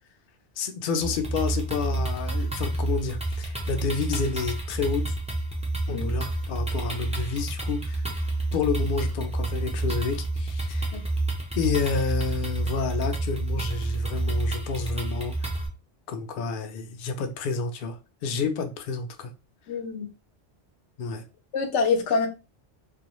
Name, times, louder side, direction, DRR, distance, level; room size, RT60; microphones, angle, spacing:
voice 1, 0.6-5.2 5.9-8.0 8.5-11.0 11.6-15.3 16.1-19.3 21.0-21.2, left 5 dB, 60° left, 0.6 m, -30 dB
sound 1, 1.0-15.7, right 2 dB, 10° right, 0.4 m, -29 dB
voice 2, 19.7-20.1 21.5-22.3, left 4 dB, 85° left, 0.9 m, -25 dB
2.3 x 2.2 x 2.9 m
omnidirectional pair, 1.2 m